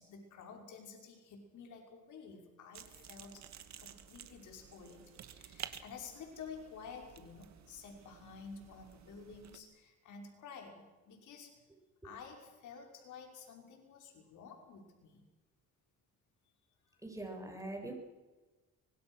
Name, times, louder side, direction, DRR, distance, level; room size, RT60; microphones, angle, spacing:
voice 1, 0.0-3.5 3.8-11.5 12.0-15.2, left 5 dB, 75° left, 2 dB, 5.8 m, -51 dB
sound 1, 2.7-9.6, right 9 dB, 65° right, 2.2 m, -52 dB
voice 2, 17.0-17.9, right 2 dB, 10° right, 3 dB, 7.1 m, -42 dB
24.5 x 23.0 x 6.4 m, 1.2 s
cardioid pair, 90°, 30 cm